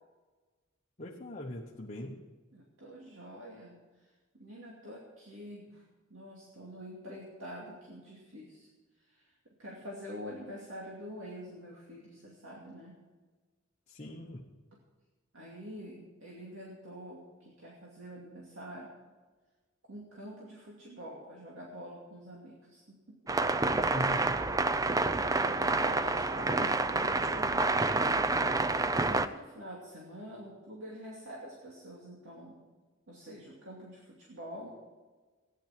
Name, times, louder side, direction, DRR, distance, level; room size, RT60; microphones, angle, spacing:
voice 1, 1.0-2.2 13.9-14.5 23.9-24.3, left 1 dB, 35° left, -2 dB, 1.1 m, -40 dB
voice 2, 2.5-5.8 6.1-8.7 9.0-9.3 9.6-13.0 15.3-18.9 19.9-23.2 25.3-27.7 29.0-32.6 33.1-34.7, equal, 70° right, -3 dB, 2.6 m, -46 dB
sound 1, 23.3-29.3, right 3 dB, 15° right, 0.5 m, -28 dB
15.5 x 10.5 x 5.9 m, 1.3 s
head